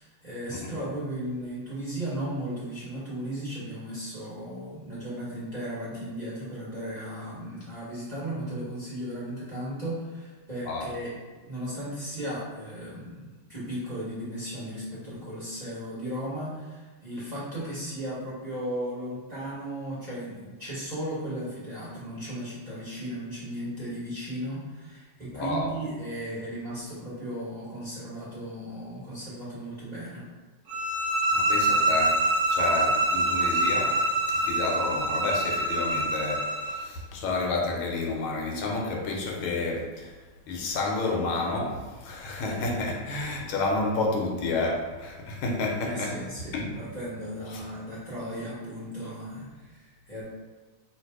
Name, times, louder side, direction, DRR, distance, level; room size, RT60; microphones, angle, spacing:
voice 1, 0.0-11.1 11.4-30.2 45.8-50.2, right 1 dB, 25° right, -10 dB, 1.2 m, -36 dB
voice 2, 25.3-25.7 31.3-32.2 32.5-40.2 40.5-46.2 46.5-46.8 47.5-47.6, left 3 dB, 80° left, 0 dB, 1.5 m, -30 dB
sound 1, 30.7-36.8, right 2 dB, 75° right, 0.7 m, -25 dB
3.3 x 2.9 x 4.6 m, 1.3 s
omnidirectional pair, 2.2 m